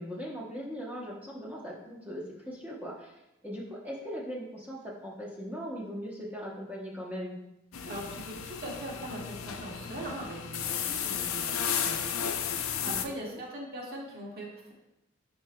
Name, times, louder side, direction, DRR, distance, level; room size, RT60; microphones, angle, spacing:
voice 1, 0.0-7.4 12.8-13.2, equal, 10° right, -4 dB, 0.9 m, -39 dB
sound 1, 7.7-13.0, left 8 dB, 90° left, 0.5 m, -33 dB
voice 2, 7.9-14.7, right 1 dB, 50° right, -4 dB, 1.8 m, -41 dB
10.0 x 4.6 x 2.2 m, 0.90 s
head